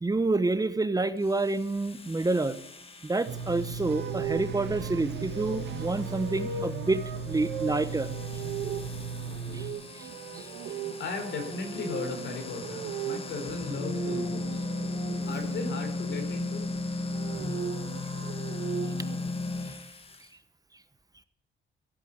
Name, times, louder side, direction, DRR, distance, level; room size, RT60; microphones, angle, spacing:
voice 1, 0.0-2.6 3.0-8.1 9.5-9.7 9.9-10.1 10.3-10.5, right 2 dB, 20° right, 13 dB, 1.0 m, -28 dB
sound 1, 1.2-20.3, left 2 dB, 30° left, 1.9 m, -37 dB
sound 2, 3.3-9.7, right 5 dB, 60° right, 1.1 m, -37 dB
sound 3, 3.9-15.8 16.9-19.2, right 6 dB, 90° right, 1.8 m, -38 dB
voice 2, 11.0-14.7 15.2-16.7, left 4 dB, 70° left, 4 dB, 4.4 m, -36 dB
15.5 x 8.4 x 8.1 m, 0.73 s
cardioid pair, 90°, 20 cm